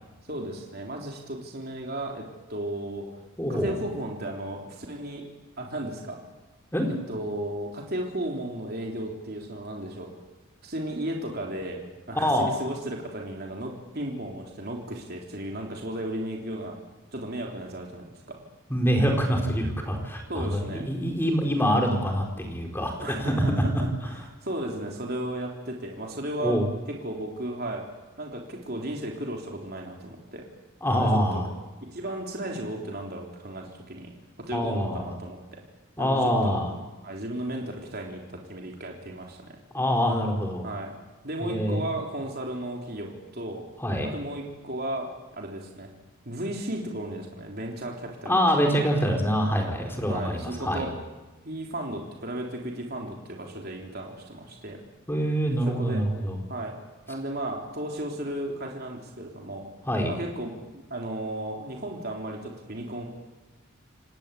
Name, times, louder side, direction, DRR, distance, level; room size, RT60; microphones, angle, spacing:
voice 1, 0.3-3.1 3.5-5.2 5.6-6.2 6.9-10.1 10.6-11.8 12.1-16.8 17.1-18.4 20.3-20.9 23.0-24.1 24.4-26.6 26.9-27.9 28.2-30.4 30.9-31.4 31.9-34.1 34.4-35.6 36.0-36.6 37.0-39.6 40.6-40.9 41.2-43.6 44.0-45.1 45.4-45.9 46.3-48.9 50.1-51.0 51.5-54.8 55.7-56.1 56.5-56.8 57.1-59.7 60.1-63.0, right 1 dB, 45° right, 0 dB, 3.6 m, -34 dB
voice 2, 3.4-3.7 6.7-6.9 12.1-12.5 18.7-24.2 26.4-26.7 30.8-31.5 34.5-35.1 36.0-36.7 39.7-40.7 41.4-41.8 43.8-44.1 48.3-50.9 55.1-56.4 59.8-60.1, equal, 10° left, 2 dB, 4.3 m, -25 dB
29.0 x 18.5 x 8.4 m, 1.2 s
head